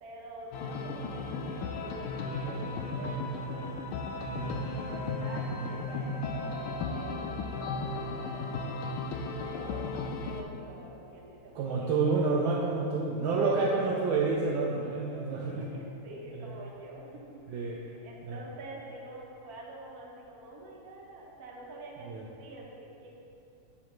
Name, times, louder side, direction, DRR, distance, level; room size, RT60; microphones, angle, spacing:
voice 1, 0.0-3.8 4.4-8.9 9.3-9.9 10.1-11.9 13.3-13.7 13.9-14.0 15.4-23.1, right 2 dB, 55° right, -3 dB, 1.3 m, -47 dB
sound 1, 0.5-10.4, left 3 dB, 80° left, 1.4 m, -35 dB
voice 2, 4.3-4.7 11.5-15.6 16.4-16.5 17.5-17.8 18.2-18.4 22.1-22.2, right 4 dB, 75° right, -2 dB, 1.3 m, -29 dB
9.7 x 4.8 x 3.1 m, 2.7 s
omnidirectional pair, 2.3 m